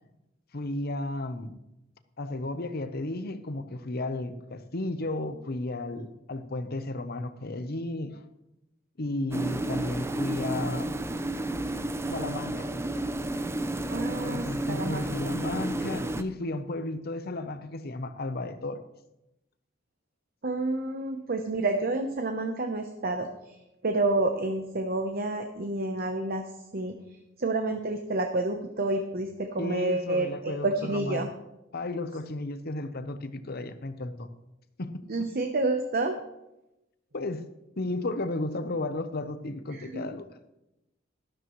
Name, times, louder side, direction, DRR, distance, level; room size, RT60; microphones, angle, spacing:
voice 1, 0.5-1.5 2.2-8.2 9.0-10.9 12.1-12.7 14.2-18.8 29.6-31.3 31.7-34.3 34.8-35.0 37.1-37.5 37.8-40.4, left 2 dB, 50° left, 0.8 m, -33 dB
sound 1, 9.3-16.2, right 1 dB, 15° right, 0.5 m, -31 dB
voice 2, 13.9-15.0 20.4-23.3 23.8-26.4 26.7-27.0 27.4-31.3 35.1-36.2 39.7-40.1, right 2 dB, 50° right, 0.9 m, -29 dB
13.0 x 12.5 x 3.1 m
head